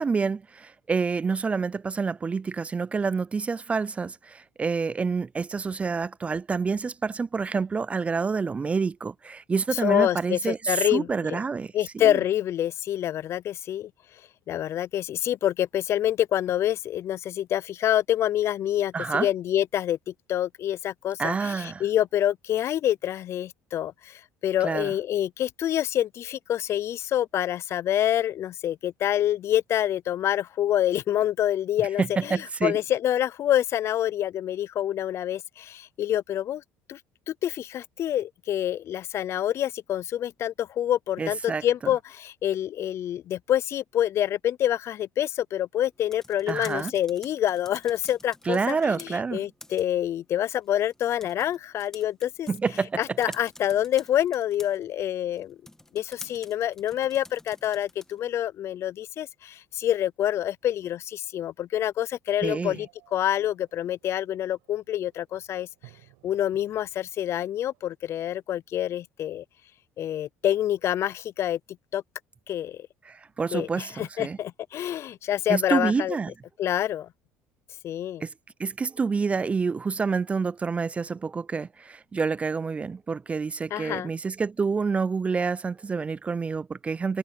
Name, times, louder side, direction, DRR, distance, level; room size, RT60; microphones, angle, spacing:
voice 1, 0.0-12.2 18.9-19.3 21.2-21.8 24.6-24.9 32.0-32.8 41.2-41.6 46.5-46.9 48.5-49.5 52.5-53.2 62.4-62.8 73.0-74.4 75.5-76.3 78.2-78.3 78.6-87.2, right 5 dB, 20° right, 0.4 m, -28 dB
voice 2, 9.8-11.4 11.7-13.9 14.5-36.6 36.9-37.0 37.3-52.5 53.0-55.6 55.9-65.7 66.2-69.4 70.0-71.6 71.9-72.0 72.5-72.9 73.5-76.2 76.6-77.1 77.8-78.2 83.7-84.1, left 11 dB, 50° left, 0.5 m, -27 dB
sound 1, 45.9-58.4, left 1 dB, 10° left, 1.6 m, -51 dB
sound 2, 62.7-68.0, right 30 dB, 85° right, 7.6 m, -59 dB
supercardioid pair, 100°, 6 cm